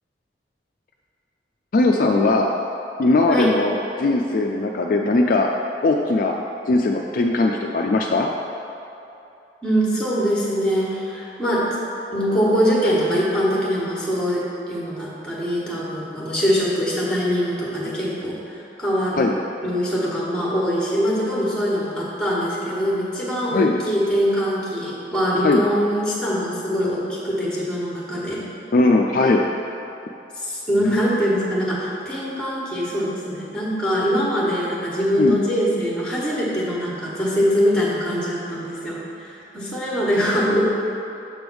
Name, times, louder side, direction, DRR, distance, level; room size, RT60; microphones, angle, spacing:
voice 1, 1.7-2.5 3.0-5.5 5.8-6.3 6.7-8.3 19.2-19.3 23.5-23.7 25.4-25.6 28.7-29.4 30.8-31.0 35.2-35.4, left 2 dB, 50° left, 1 dB, 0.3 m, -19 dB
voice 2, 9.6-11.7 12.1-14.4 14.7-19.2 19.6-28.5 30.4-40.6, equal, 5° left, -6 dB, 1.3 m, -23 dB
6.9 x 3.4 x 6.1 m, 2.8 s
head